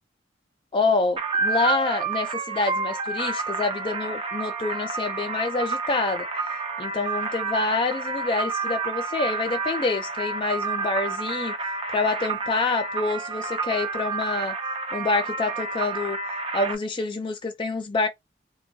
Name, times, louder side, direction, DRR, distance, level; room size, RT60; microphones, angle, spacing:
voice 1, 0.7-6.3 6.8-11.5 11.9-14.6 14.9-16.2 16.5-18.1, left 3 dB, 30° left, 0.4 m, -27 dB
sound 1, 1.2-16.8, right 4 dB, 30° right, 0.5 m, -29 dB
3.6 x 2.3 x 2.2 m
head